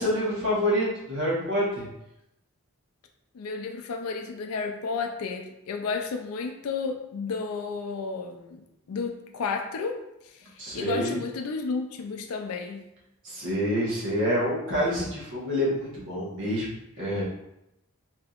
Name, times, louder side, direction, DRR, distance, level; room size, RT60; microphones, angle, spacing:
voice 1, 0.0-1.9 10.6-11.2 13.2-17.2, equal, 60° right, -5 dB, 1.2 m, -27 dB
voice 2, 3.3-12.8, left 4 dB, 70° left, 4 dB, 0.4 m, -32 dB
3.4 x 2.8 x 2.4 m, 0.85 s
head